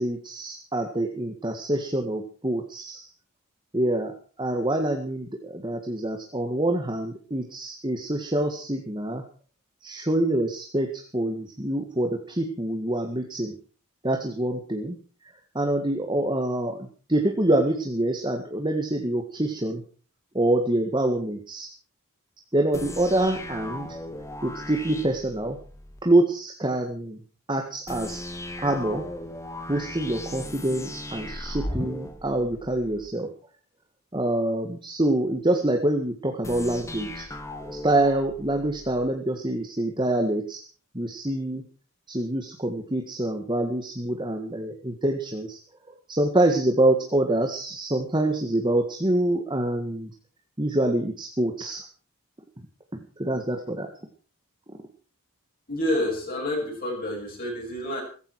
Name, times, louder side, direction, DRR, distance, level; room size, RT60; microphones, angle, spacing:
voice 1, 0.0-3.1 3.7-4.1 4.4-9.2 9.8-13.5 14.0-15.0 15.6-19.8 20.3-21.7 22.5-23.9 24.4-25.6 26.0-27.2 27.5-28.2 28.6-29.1 29.7-33.3 34.1-37.3 37.6-40.6 40.9-41.6 42.1-45.6 46.1-50.1 50.6-51.8 52.9-53.9, right 1 dB, 20° right, 3 dB, 1.8 m, -26 dB
sound 1, 22.7-26.0 27.9-33.1 36.4-39.1, left 1 dB, 15° left, 2.0 m, -37 dB
voice 2, 55.7-58.0, left 1 dB, 40° left, -1 dB, 7.2 m, -28 dB
17.0 x 15.0 x 4.8 m, 0.40 s
head